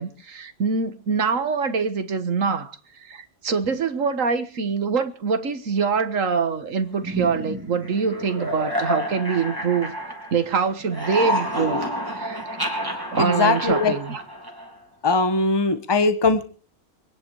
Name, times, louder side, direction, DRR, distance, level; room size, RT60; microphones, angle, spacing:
voice 1, 0.0-9.9 10.3-11.8 12.1-12.6 13.1-14.2, right 5 dB, 65° right, 1.9 m, -24 dB
sound 1, 7.0-10.5 10.8-14.8, equal, 15° right, 3.5 m, -29 dB
voice 2, 13.2-14.0 15.0-16.4, left 3 dB, 20° left, 1.2 m, -20 dB
25.0 x 10.5 x 4.7 m
omnidirectional pair, 1.5 m